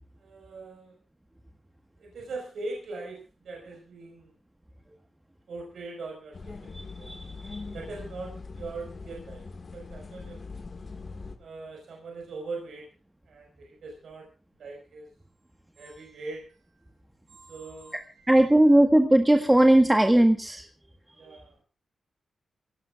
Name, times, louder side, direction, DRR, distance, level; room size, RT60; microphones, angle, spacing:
voice 1, 0.2-0.9 2.0-4.3 5.5-7.1 7.7-10.4 11.4-12.9 13.3-14.3 14.5-15.1 15.7-16.6 17.3-18.6 21.1-21.6, right 3 dB, 85° right, 1 dB, 5.3 m, -41 dB
sound 1, 6.3-11.4, left 4 dB, 45° left, 2.0 m, -41 dB
voice 2, 6.7-7.6 18.3-20.6, right 1 dB, 10° right, 5 dB, 1.5 m, -19 dB
25.5 x 17.5 x 2.5 m, 0.33 s
cardioid pair, 90°, 0 cm